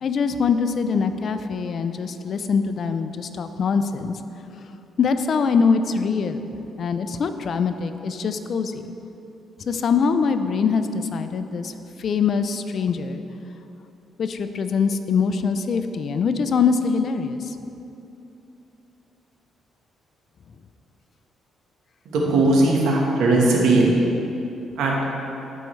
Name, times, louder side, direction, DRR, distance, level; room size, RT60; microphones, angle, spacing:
voice 1, 0.0-4.2 5.0-6.5 6.8-8.8 9.7-11.7 12.0-13.2 14.2-17.6, left 5 dB, 55° left, 9 dB, 0.4 m, -23 dB
voice 2, 22.1-23.9 24.8-25.0, right 2 dB, 85° right, -2 dB, 1.3 m, -18 dB
13.0 x 4.7 x 3.2 m, 2.9 s
cardioid pair, 90°, 0 cm